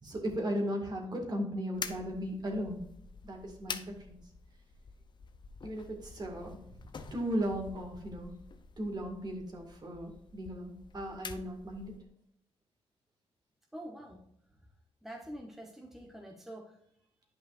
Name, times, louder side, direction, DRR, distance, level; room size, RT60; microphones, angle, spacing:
voice 1, 0.0-2.8 3.2-4.2 5.6-6.6 7.0-8.3 8.8-11.9, equal, 40° right, 0 dB, 2.1 m, -36 dB
sound 1, 1.7-12.1, left 5 dB, 45° left, 0.7 m, -47 dB
voice 2, 13.7-14.2 15.0-16.7, right 1 dB, 5° right, 0 dB, 1.2 m, -46 dB
9.9 x 5.5 x 2.6 m, 0.73 s
cardioid pair, 95°, 11 cm